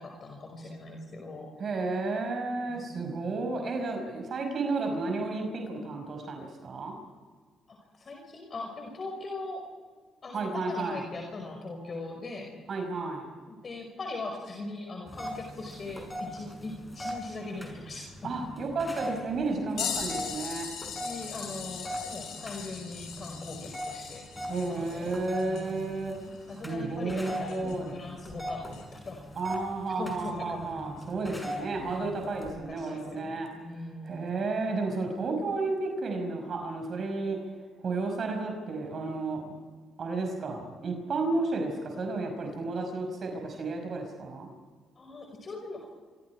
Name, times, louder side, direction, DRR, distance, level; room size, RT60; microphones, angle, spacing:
voice 1, 0.0-1.5 2.6-2.9 7.7-9.6 10.2-12.5 13.5-18.1 19.8-20.0 21.0-24.2 24.7-25.8 26.5-29.2 30.0-30.7 31.8-32.0 32.4-34.3 45.0-45.9, left 2 dB, 40° left, 2 dB, 5.3 m, -40 dB
voice 2, 1.6-7.0 10.3-11.0 12.7-13.3 18.2-20.7 24.5-26.1 26.6-28.0 29.4-33.5 34.0-37.4 37.8-39.4 40.0-44.5, right 3 dB, 50° right, 3 dB, 5.5 m, -32 dB
sound 1, 15.1-32.5, equal, 10° left, 6.3 m, -41 dB
sound 2, 19.8-28.0 28.7-28.8 31.1-31.2 32.2-32.4 33.5-33.6, left 7 dB, 85° left, 6.9 m, -40 dB
28.0 x 26.0 x 4.8 m, 1.6 s
cardioid pair, 90°, 0 cm